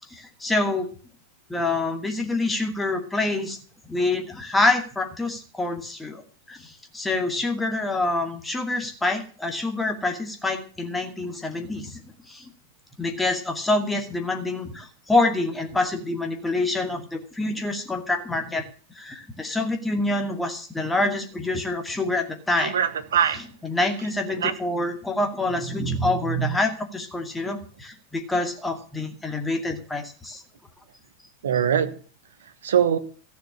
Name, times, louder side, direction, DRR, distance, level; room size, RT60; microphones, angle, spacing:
voice 1, 0.1-0.9 1.5-3.6 3.9-6.2 6.5-12.0 12.3-12.5 13.0-18.6 18.9-22.8 23.6-30.4, left 2 dB, 10° left, 2.4 m, -26 dB
voice 2, 22.6-23.4 24.4-24.5 31.4-31.9 32.6-33.0, right 8 dB, 65° right, 1.3 m, -22 dB
14.5 x 6.9 x 8.5 m
figure-of-eight pair, 90°, 0 cm